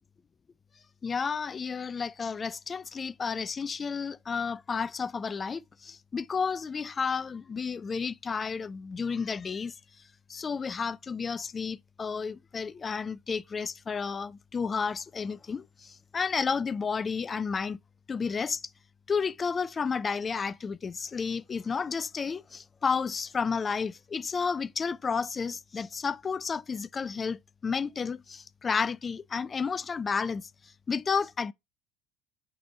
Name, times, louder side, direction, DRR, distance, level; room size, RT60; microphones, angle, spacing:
voice 1, 1.0-9.7 10.3-17.8 18.1-18.6 19.1-30.5 30.9-31.5, left 5 dB, 30° left, 0.3 m, -31 dB
6.2 x 4.2 x 4.2 m
figure-of-eight pair, 65°, 0 cm